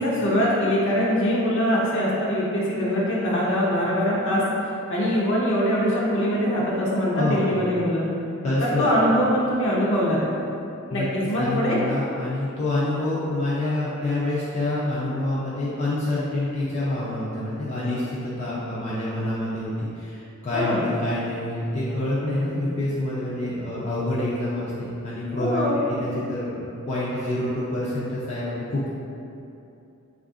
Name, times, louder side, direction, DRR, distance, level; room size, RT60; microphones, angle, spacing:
voice 1, 0.0-4.4 4.9-8.1 8.6-10.2 10.9-11.8 20.5-20.8 25.4-25.8, equal, 60° left, -6 dB, 0.8 m, -23 dB
voice 2, 7.1-7.5 8.4-8.9 10.9-11.1 11.3-26.6 26.9-28.9, left 1 dB, 30° left, -9 dB, 0.5 m, -27 dB
3.2 x 2.5 x 3.6 m, 2.7 s
head